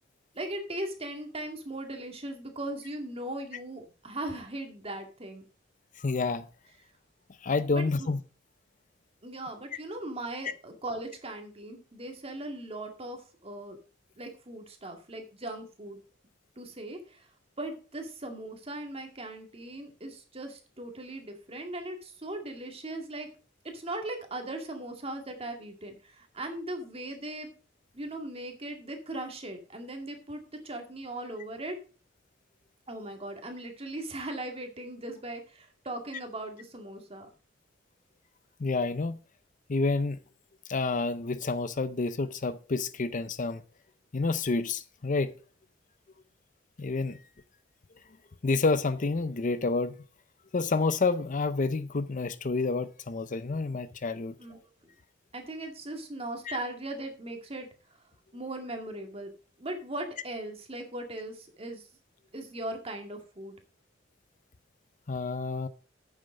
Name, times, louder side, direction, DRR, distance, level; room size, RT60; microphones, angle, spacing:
voice 1, 0.3-5.4 7.7-8.1 9.2-13.8 14.2-16.0 16.6-17.3 17.6-23.3 23.7-27.5 27.9-31.8 32.9-37.3 54.4-54.9 55.3-57.7 58.3-59.3 59.6-61.9 62.3-63.6, right 1 dB, 30° right, 2.2 m, -39 dB
voice 2, 6.0-6.4 7.4-8.2 38.6-39.2 39.7-40.2 40.7-43.6 44.1-45.3 46.8-47.2 48.4-49.9 50.5-54.3 56.5-56.6 65.1-65.7, left 3 dB, 45° left, 0.6 m, -29 dB
9.0 x 7.2 x 5.2 m
head